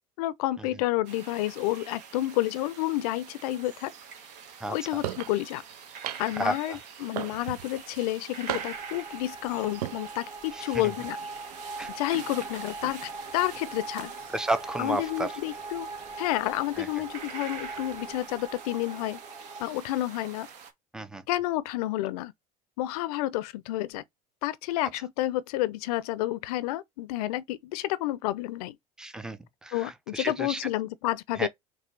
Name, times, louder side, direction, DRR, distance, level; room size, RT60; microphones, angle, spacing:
voice 1, 0.2-3.9 4.7-5.6 6.2-11.2 11.9-14.1 14.8-15.9 16.2-19.2 19.6-20.5 21.3-22.3 22.8-24.0 24.4-28.8 29.7-31.5, left 15 dB, 75° left, 0.6 m, -30 dB
sound 1, 1.0-20.7, right 6 dB, 65° right, 1.1 m, -45 dB
voice 2, 4.6-5.0 6.4-6.8 10.5-10.9 11.8-11.9 14.3-15.3 16.8-16.9 20.9-21.2 29.0-30.6 31.3-31.5, right 2 dB, 5° right, 0.6 m, -33 dB
sound 2, 5.0-5.3 6.0-6.5 7.2-7.7 8.5-9.0 9.7-10.0, right 12 dB, 85° right, 0.4 m, -34 dB
sound 3, 8.5-19.6, right 3 dB, 25° right, 2.0 m, -41 dB
6.0 x 2.3 x 3.2 m
hypercardioid pair, 75°, 20 cm